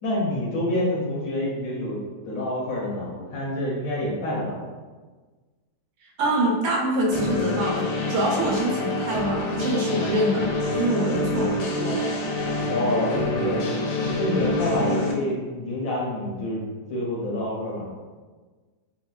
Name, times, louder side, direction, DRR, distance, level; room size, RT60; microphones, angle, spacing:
voice 1, 0.0-2.0 2.3-4.6 12.7-13.6 14.0-16.6 16.9-17.9, left 1 dB, 65° left, -5 dB, 0.9 m, -27 dB
voice 2, 6.2-12.0, right 1 dB, 80° right, -2 dB, 1.2 m, -25 dB
sound 1, 7.1-15.1, left 1 dB, 85° left, 1.2 m, -27 dB
3.7 x 2.1 x 2.3 m, 1.4 s
omnidirectional pair, 1.8 m